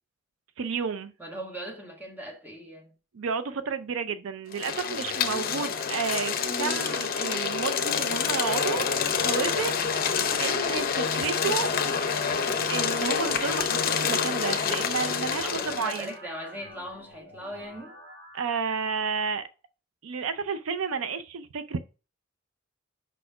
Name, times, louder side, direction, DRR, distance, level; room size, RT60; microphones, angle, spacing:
voice 1, 0.6-1.1 3.1-8.9 9.2-10.0 10.4-11.7 12.7-16.1 18.3-19.5 20.0-21.8, right 5 dB, 75° right, 0.5 m, -31 dB
voice 2, 1.2-2.9 15.4-17.9, equal, 10° right, 1.4 m, -39 dB
sound 1, 4.5-16.1, left 6 dB, 45° left, 0.7 m, -27 dB
sound 2, 8.7-18.7, equal, 55° right, 1.5 m, -48 dB
5.5 x 4.2 x 4.7 m
head